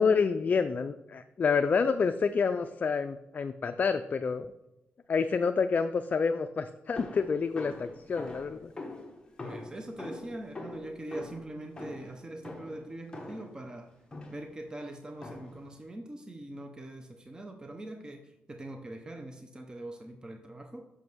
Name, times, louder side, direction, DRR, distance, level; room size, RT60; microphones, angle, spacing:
voice 1, 0.0-4.5 5.1-8.7, left 5 dB, 40° left, 8 dB, 0.4 m, -28 dB
sound 1, 7.0-13.6 14.1-14.6 15.2-15.7, left 2 dB, 20° left, 1.2 m, -44 dB
voice 2, 9.4-13.9 14.3-18.2 18.5-20.8, right 1 dB, 20° right, 4 dB, 0.8 m, -42 dB
6.2 x 5.3 x 6.1 m, 0.94 s
cardioid pair, 115°, 4 cm